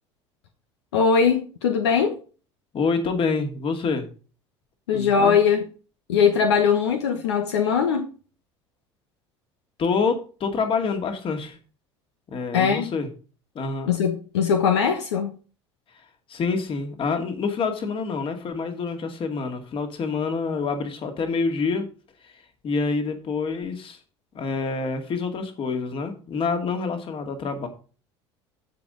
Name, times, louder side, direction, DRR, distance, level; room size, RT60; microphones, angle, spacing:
voice 1, 0.9-2.2 4.9-5.6 6.1-8.1 12.5-12.9 13.9-15.3, left 6 dB, 70° left, 1.1 m, -20 dB
voice 2, 2.7-4.1 4.9-5.4 9.8-11.6 12.3-13.1 13.5-13.9 16.3-21.9 22.2-22.3 22.6-24.0 24.3-27.7, left 4 dB, 35° left, 2.3 m, -27 dB
15.0 x 5.3 x 3.8 m
figure-of-eight pair, 65°, 15 cm